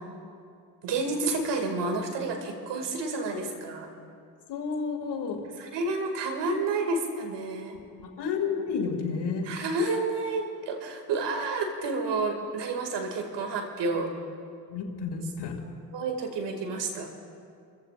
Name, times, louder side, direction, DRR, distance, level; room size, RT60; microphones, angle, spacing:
voice 1, 0.8-3.9 5.6-7.8 9.4-14.1 15.9-17.1, right 3 dB, 55° right, 4 dB, 2.4 m, -30 dB
voice 2, 4.5-5.4 8.2-9.5 14.7-15.5, left 5 dB, 55° left, 2 dB, 2.4 m, -31 dB
27.5 x 14.5 x 2.5 m, 2.4 s
hypercardioid pair, 50°, 49 cm